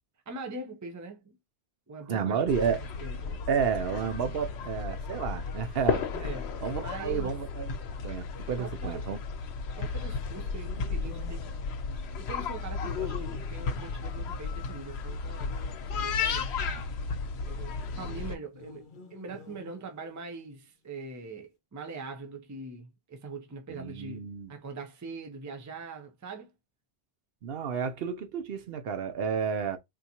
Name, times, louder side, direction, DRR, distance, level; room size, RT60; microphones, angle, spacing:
voice 1, 0.3-1.4 1.9-3.4 6.1-7.4 8.6-9.0 9.8-11.6 12.2-15.5 15.9-16.6 17.4-18.8 19.1-26.5, right 3 dB, 20° right, 0.5 m, -42 dB
voice 2, 2.1-2.8 3.5-6.0 6.6-7.7 8.0-9.2 16.6-16.8 23.7-24.5 27.4-29.8, right 7 dB, 70° right, 0.8 m, -31 dB
sound 1, 2.5-18.4, left 5 dB, 85° left, 0.9 m, -34 dB
sound 2, 10.2-12.6 15.3-16.6 18.5-20.4, left 3 dB, 60° left, 0.7 m, -51 dB
3.8 x 2.5 x 2.8 m
omnidirectional pair, 1.1 m